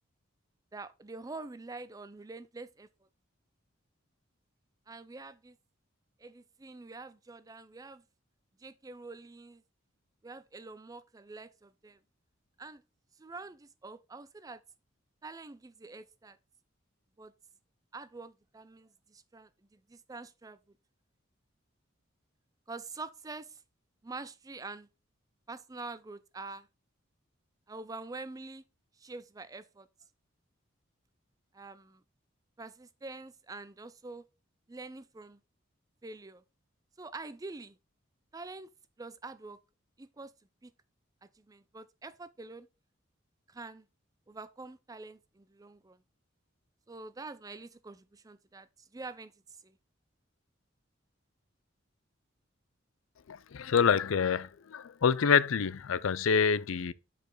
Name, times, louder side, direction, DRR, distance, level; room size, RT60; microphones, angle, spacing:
voice 1, 0.7-2.9 4.9-5.6 6.2-8.0 8.6-9.6 10.2-12.0 12.6-12.8 13.2-14.6 15.2-16.4 17.2-17.3 17.9-20.8 22.7-23.6 24.0-24.9 25.5-26.7 27.7-28.6 29.0-29.9 31.5-32.0 32.6-34.3 34.7-35.4 36.0-36.4 37.0-37.8 38.3-38.7 39.0-39.6 40.0-40.3 40.6-40.7 41.4-42.7 43.5-43.9 44.3-46.0 46.9-49.3 49.6-49.8, right 3 dB, 20° right, 0.4 m, -46 dB
voice 2, 53.3-56.9, left 6 dB, 90° left, 0.5 m, -27 dB
6.8 x 5.0 x 3.9 m
head